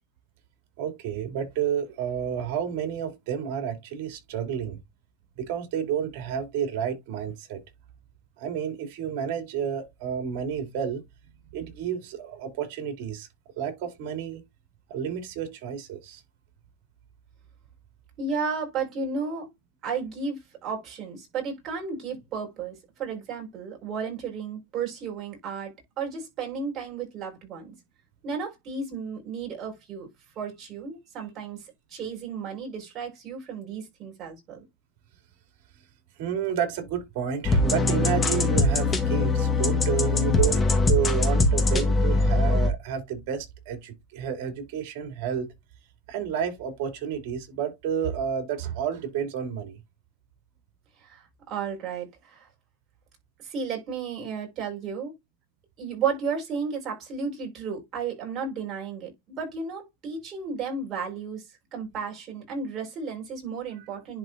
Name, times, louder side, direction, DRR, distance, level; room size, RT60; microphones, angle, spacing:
voice 1, 0.8-4.8 5.4-7.6 8.4-11.0 11.5-13.3 13.6-14.4 14.9-16.2 36.2-45.5 46.1-49.8, right 8 dB, 55° right, 3.0 m, -30 dB
voice 2, 18.2-19.5 19.8-27.8 28.2-30.1 30.3-34.6 51.0-52.5 53.4-55.1 55.8-64.2, right 5 dB, 30° right, 4.8 m, -33 dB
sound 1, 37.4-42.7, left 2 dB, 20° left, 1.4 m, -22 dB
10.5 x 4.0 x 2.6 m
supercardioid pair, 155°, 0 cm